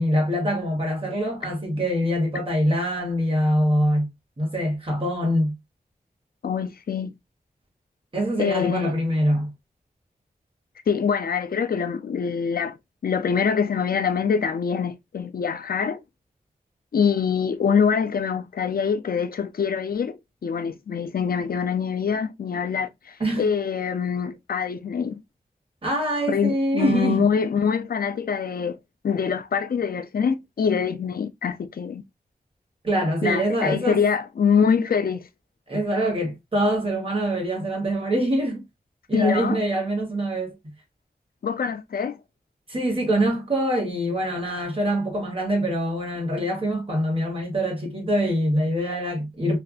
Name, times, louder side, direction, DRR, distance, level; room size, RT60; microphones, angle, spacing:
voice 1, 0.0-5.5 8.1-9.5 23.2-23.5 25.8-27.2 32.8-34.0 35.7-38.6 39.1-40.5 42.7-49.6, equal, 35° right, 1.5 m, -24 dB
voice 2, 6.4-7.1 8.4-8.9 10.9-12.8 13.0-16.0 16.9-25.2 26.3-28.8 29.0-32.0 33.2-35.2 39.1-39.6 41.4-42.2, left 6 dB, 70° left, 0.5 m, -24 dB
3.3 x 2.5 x 2.4 m
wide cardioid pair, 70°, 16 cm